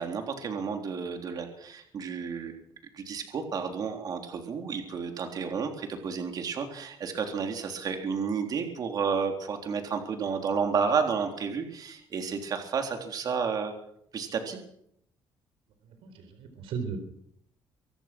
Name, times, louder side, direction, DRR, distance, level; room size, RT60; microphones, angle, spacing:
voice 1, 0.0-2.6 3.0-13.7 14.1-14.6, right 6 dB, 45° right, 4 dB, 3.7 m, -31 dB
voice 2, 16.0-17.0, right 6 dB, 80° right, 7 dB, 4.3 m, -36 dB
24.5 x 17.0 x 6.2 m, 0.72 s
cardioid pair, 150°, 9 cm